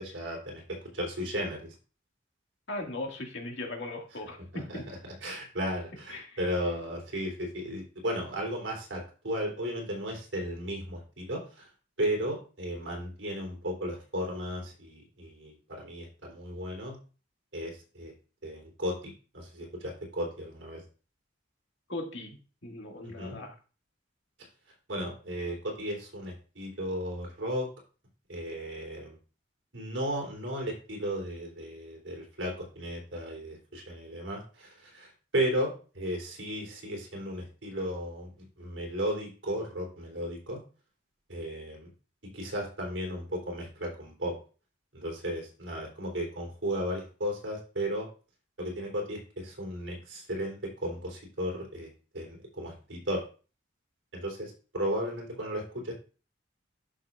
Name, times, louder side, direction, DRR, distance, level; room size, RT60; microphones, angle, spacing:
voice 1, 0.0-1.7 4.5-11.7 12.0-17.0 17.5-18.1 18.4-20.8 23.0-23.4 24.9-27.7 28.3-29.2 29.7-40.6 41.3-41.9 42.3-44.4 44.9-48.1 48.6-53.2 54.1-55.9, equal, 80° right, 0 dB, 3.4 m, -35 dB
voice 2, 2.7-4.9 6.1-6.4 21.9-22.3 22.6-23.6, left 2 dB, 70° left, 1 dB, 2.1 m, -38 dB
11.5 x 6.1 x 2.5 m, 0.36 s
head